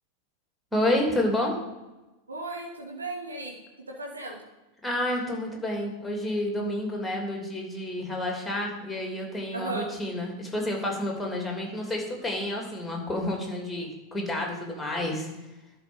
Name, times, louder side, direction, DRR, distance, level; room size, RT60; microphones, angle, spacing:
voice 1, 0.7-1.5 4.8-15.3, left 1 dB, 5° left, 0 dB, 2.9 m, -29 dB
voice 2, 2.3-3.6 4.0-4.4 9.5-9.9, right 2 dB, 75° right, 0 dB, 1.5 m, -35 dB
11.5 x 4.7 x 7.1 m, 1.1 s
figure-of-eight pair, 90°, 0 cm